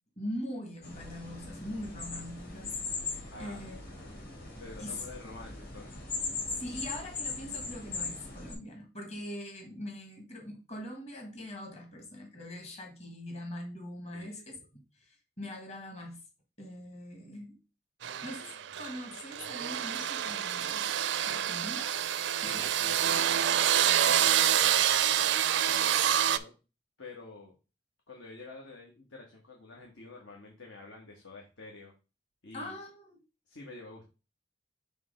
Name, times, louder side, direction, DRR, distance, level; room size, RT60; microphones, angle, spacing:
voice 1, 0.2-4.2 4.8-5.0 6.5-16.2 16.6-17.6 18.2-20.9 21.3-22.0 22.4-22.7 32.5-33.2, left 1 dB, 35° left, 1.5 m, -42 dB
sound 1, 0.8-8.5, left 4 dB, 50° left, 2.3 m, -39 dB
voice 2, 3.3-3.6 3.9-4.1 4.6-6.1 14.1-14.4 22.4-23.4 24.0-26.6 27.0-27.5 28.1-31.9 32.4-32.7 33.5-34.1, left 2 dB, 80° left, 1.4 m, -48 dB
sound 2, 18.0-26.4, right 10 dB, 70° right, 0.4 m, -27 dB
6.2 x 3.4 x 5.1 m
head